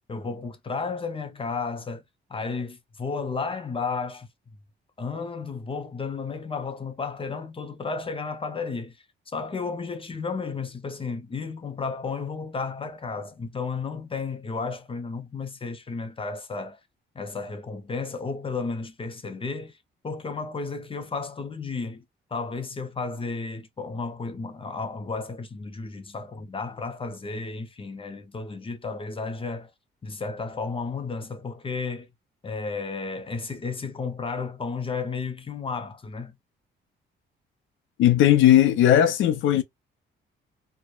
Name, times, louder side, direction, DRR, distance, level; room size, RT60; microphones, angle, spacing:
voice 1, 0.1-2.0 2.3-4.3 5.0-9.0 9.3-16.8 17.1-19.8 20.0-22.0 22.3-29.7 30.0-32.1 32.4-36.4, left 4 dB, 25° left, 0.6 m, -33 dB
voice 2, 38.0-39.6, left 11 dB, 75° left, 0.5 m, -17 dB
2.9 x 2.1 x 2.3 m
cardioid pair, 90°, 20 cm